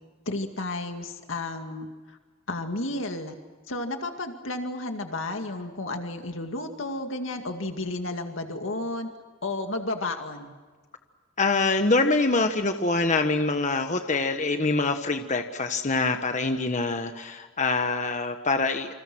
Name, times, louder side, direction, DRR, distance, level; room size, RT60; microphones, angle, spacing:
voice 1, 0.3-2.2 2.5-3.3 3.7-9.1 9.4-10.5, left 2 dB, 75° left, 5 dB, 2.2 m, -32 dB
voice 2, 11.4-18.9, left 3 dB, 35° left, 6 dB, 1.3 m, -25 dB
28.5 x 27.5 x 6.2 m, 1.4 s
head